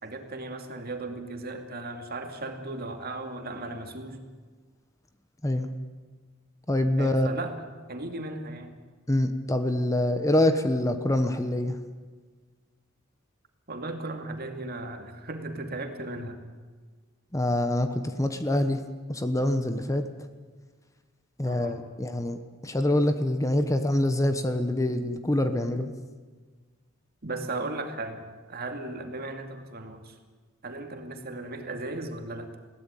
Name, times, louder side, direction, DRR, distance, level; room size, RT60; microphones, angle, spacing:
voice 1, 0.0-4.3 7.0-8.7 13.7-16.4 21.4-21.8 27.2-30.2 30.6-32.5, right 2 dB, 50° right, 5 dB, 2.5 m, -36 dB
voice 2, 6.7-7.3 9.1-11.8 17.3-18.8 19.1-20.1 21.4-25.9, left 1 dB, 15° left, 9 dB, 1.1 m, -25 dB
21.5 x 17.5 x 9.1 m, 1.4 s
head